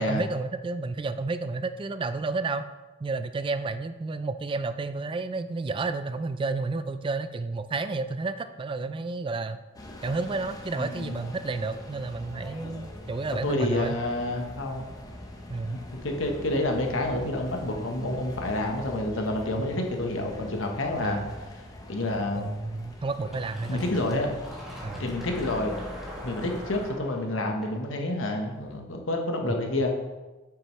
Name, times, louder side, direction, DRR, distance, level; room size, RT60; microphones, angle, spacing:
voice 1, 0.0-2.6 3.0-9.6 10.0-14.0 15.5-15.8 21.0-21.3 22.4-23.8 24.8-25.0, right 3 dB, 25° right, 11 dB, 0.3 m, -31 dB
sound 1, 9.7-26.9, left 1 dB, 20° left, 0.8 m, -43 dB
voice 2, 10.7-11.2 13.4-14.8 15.7-21.2 21.9-22.5 23.7-24.4 25.0-25.7 26.2-29.9, left 1 dB, 85° left, 3 dB, 1.1 m, -29 dB
Fill (with liquid), 23.3-28.7, equal, ahead, 1.8 m, -43 dB
8.4 x 6.6 x 3.1 m, 1.2 s
head